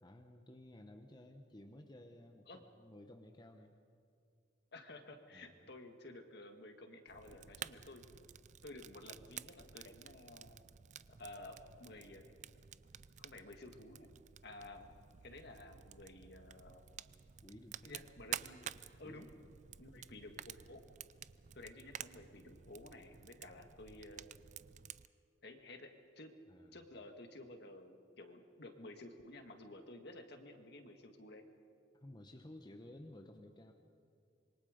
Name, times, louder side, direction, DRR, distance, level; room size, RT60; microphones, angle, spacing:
voice 1, 0.0-3.8 5.3-5.5 17.4-18.0 19.0-19.4 26.5-26.8 31.9-33.7, left 1 dB, 25° left, 5 dB, 1.0 m, -55 dB
voice 2, 4.7-8.1 8.6-10.6 11.2-12.2 13.2-14.1 14.4-14.9 15.2-16.9 17.8-18.6 19.0-19.3 19.8-20.8 21.5-24.4 25.4-25.9 26.2-26.3 26.7-31.4, left 2 dB, 60° left, 5 dB, 1.9 m, -53 dB
Fire, 7.1-25.1, right 9 dB, 40° right, 0.4 m, -51 dB
26.0 x 23.0 x 5.1 m, 2.3 s
head